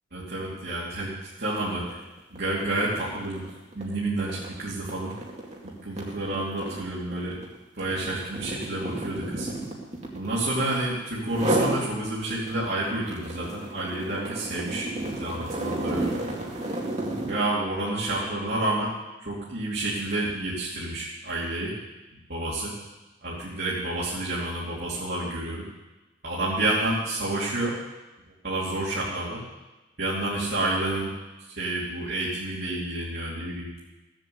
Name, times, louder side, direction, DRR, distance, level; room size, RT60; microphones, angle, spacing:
voice 1, 0.1-2.0 2.3-3.4 3.7-5.1 5.8-7.4 7.7-9.5 10.1-14.9 15.2-16.2 17.3-18.9 19.2-21.7 22.3-22.7 23.2-25.6 26.2-27.8 28.4-29.4 30.0-31.1 31.6-33.7, right 2 dB, 55° right, -7 dB, 2.8 m, -29 dB
sound 1, 1.8-2.0 2.4-10.8 11.3-11.8 12.3-17.4, right 1 dB, 35° right, 2.2 m, -32 dB
16.5 x 7.6 x 7.9 m, 1.1 s
head